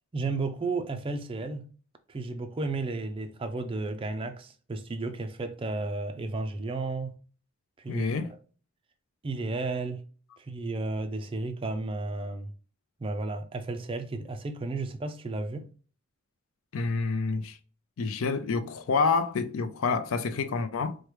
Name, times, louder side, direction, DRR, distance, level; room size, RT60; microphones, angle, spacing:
voice 1, 0.1-1.7 2.1-7.2 7.8-8.4 9.2-10.0 10.4-12.5 13.0-15.7, right 3 dB, 25° right, 0.3 m, -33 dB
voice 2, 7.9-8.3 16.7-17.6 18.0-21.0, left 4 dB, 65° left, 0.4 m, -28 dB
4.4 x 2.2 x 3.2 m
head